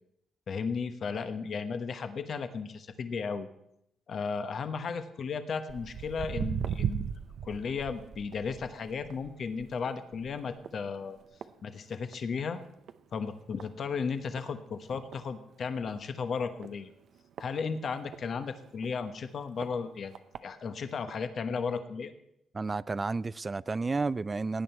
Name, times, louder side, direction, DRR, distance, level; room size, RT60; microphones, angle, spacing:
voice 1, 0.5-3.5 4.1-7.1 7.4-11.2 11.6-12.6 13.1-16.9 17.4-22.1, left 5 dB, 55° left, 1.1 m, -35 dB
Walk footsteps, 5.7-12.4 12.7-13.0 13.6-13.7 14.4-14.5 14.8-14.9 15.1-15.2 15.8-16.0 16.6-18.2 18.8-18.9 19.6-19.7 20.1-20.4 21.1-21.2, right 8 dB, 65° right, 0.7 m, -38 dB
voice 2, 22.5-24.6, right 3 dB, 25° right, 0.4 m, -31 dB
17.0 x 9.4 x 4.5 m
cardioid pair, 90°, 0 cm